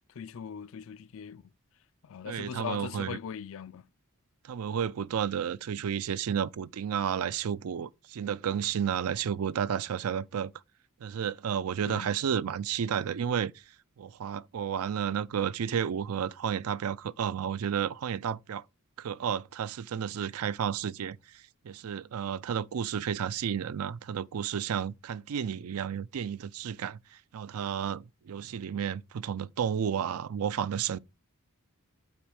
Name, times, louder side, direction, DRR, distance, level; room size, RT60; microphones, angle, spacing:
voice 1, 0.1-1.5 2.0-3.9 11.9-12.1, left 7 dB, 65° left, 0.4 m, -40 dB
voice 2, 2.2-3.2 4.4-10.5 11.0-13.6 14.0-18.6 19.0-31.0, right 8 dB, 80° right, 0.4 m, -32 dB
6.0 x 4.4 x 6.3 m
head